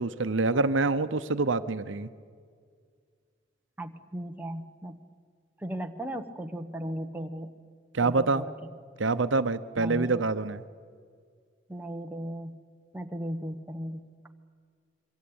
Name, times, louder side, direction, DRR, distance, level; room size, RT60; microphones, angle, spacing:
voice 1, 0.0-2.1 7.9-8.4 9.0-10.6, right 3 dB, 90° right, 12 dB, 0.8 m, -26 dB
voice 2, 3.8-5.0 5.6-7.5 8.0-8.7 9.8-10.3 11.7-12.6 12.9-14.1, equal, 10° right, 4 dB, 1.2 m, -36 dB
27.0 x 23.5 x 8.7 m, 2.1 s
head